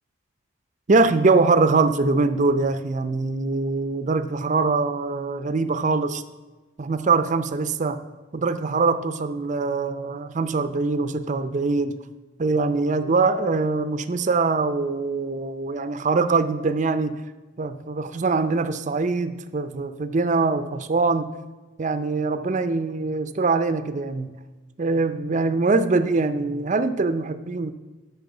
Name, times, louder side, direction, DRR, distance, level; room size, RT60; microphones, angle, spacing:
voice 1, 0.9-6.2 6.8-8.0 8.3-12.0 12.4-17.2 17.6-21.3 21.8-24.4 24.8-27.7, right 3 dB, 40° right, 11 dB, 0.5 m, -23 dB
9.1 x 5.7 x 6.9 m, 1.2 s
head